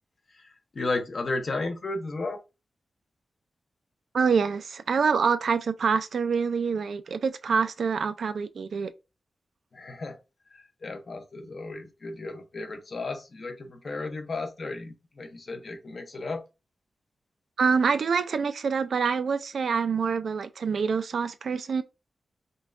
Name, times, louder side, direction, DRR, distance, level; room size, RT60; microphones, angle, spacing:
voice 1, 0.3-2.4 9.7-10.2 10.5-16.4, left 3 dB, 45° left, 0.6 m, -34 dB
voice 2, 4.1-8.9 17.6-21.8, right 5 dB, 70° right, 0.3 m, -26 dB
5.1 x 2.3 x 2.4 m
wide cardioid pair, 165°, 0 cm